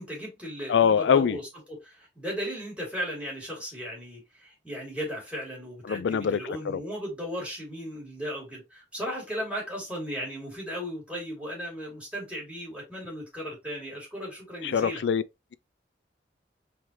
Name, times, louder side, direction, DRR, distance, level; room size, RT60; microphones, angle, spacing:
voice 1, 0.0-15.0, equal, 5° right, 2.9 m, -36 dB
voice 2, 0.7-1.4 5.9-6.8 14.6-15.2, left 7 dB, 80° left, 0.4 m, -23 dB
4.6 x 3.6 x 3.0 m
head